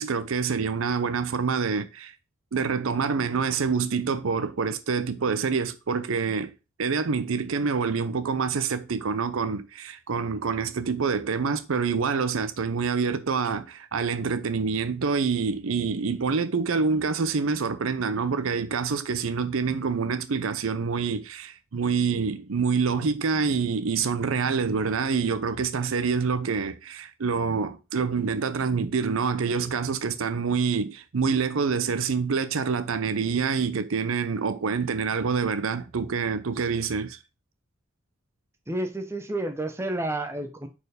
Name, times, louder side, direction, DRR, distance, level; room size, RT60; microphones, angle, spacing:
voice 1, 0.0-2.1 2.5-6.5 6.8-37.2, right 5 dB, 80° right, 0.6 m, -26 dB
voice 2, 38.7-40.7, right 1 dB, 15° right, 0.8 m, -30 dB
4.6 x 4.2 x 5.0 m
head